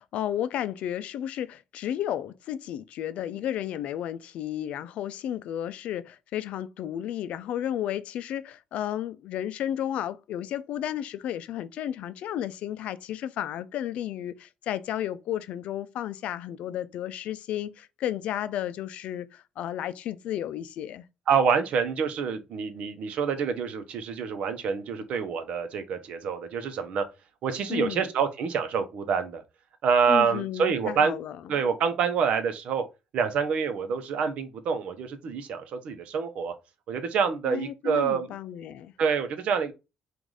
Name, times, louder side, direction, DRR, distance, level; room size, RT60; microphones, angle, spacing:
voice 1, 0.0-21.0 27.7-28.0 30.1-31.4 37.4-38.9, left 11 dB, 75° left, 0.4 m, -33 dB
voice 2, 21.3-27.0 27.4-29.4 29.8-31.1 31.5-32.8 33.1-36.5 36.9-38.3 39.0-39.7, right 6 dB, 65° right, 0.8 m, -27 dB
4.7 x 2.5 x 3.9 m
cardioid pair, 115°, 2 cm